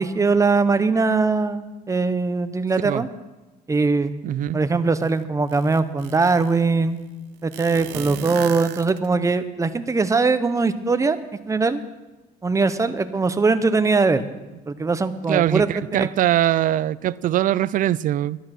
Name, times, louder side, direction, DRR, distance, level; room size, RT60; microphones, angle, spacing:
voice 1, 0.0-3.1 3.7-4.1 4.5-7.0 7.4-11.2 11.5-11.8 12.4-14.2 14.7-16.1, right 4 dB, 15° right, 0.8 m, -21 dB
voice 2, 4.2-4.6 15.3-18.4, right 12 dB, 50° right, 0.4 m, -22 dB
sound 1, 5.0-5.1 5.5-6.6 7.5-9.3, right 12 dB, 70° right, 0.8 m, -35 dB
12.0 x 10.0 x 6.0 m
cardioid pair, 105°, 18 cm